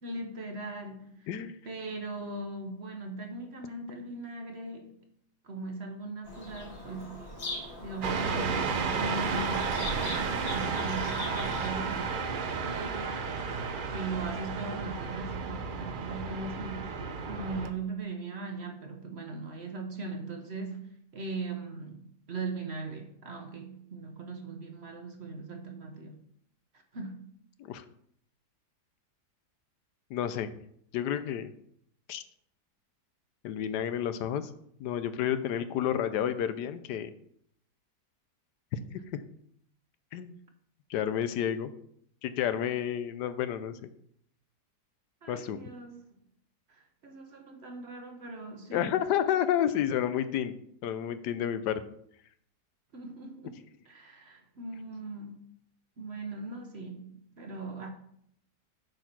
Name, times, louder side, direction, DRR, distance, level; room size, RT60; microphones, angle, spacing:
voice 1, 0.0-1.3 1.6-5.0 5.4-7.2 7.8-12.1 12.6-13.4 13.9-20.8 21.1-26.2 26.9-27.2 45.2-46.0 46.7-49.0 52.9-53.6 53.9-55.4 56.0-57.9, right 3 dB, 45° right, 1.1 m, -39 dB
voice 2, 1.3-1.6 27.6-27.8 30.1-30.5 30.9-31.5 32.1-32.2 33.4-34.5 34.8-37.1 38.7-38.8 39.1-39.2 40.1-40.3 40.9-41.7 42.2-43.8 45.3-45.6 48.7-50.5 50.8-51.8, left 10 dB, 80° left, 1.2 m, -30 dB
Bird vocalization bird call bird song, 6.3-11.7, left 2 dB, 60° left, 4.2 m, -41 dB
sound 1, 8.0-17.7, right 5 dB, 75° right, 0.4 m, -32 dB
7.9 x 4.6 x 5.9 m
omnidirectional pair, 1.8 m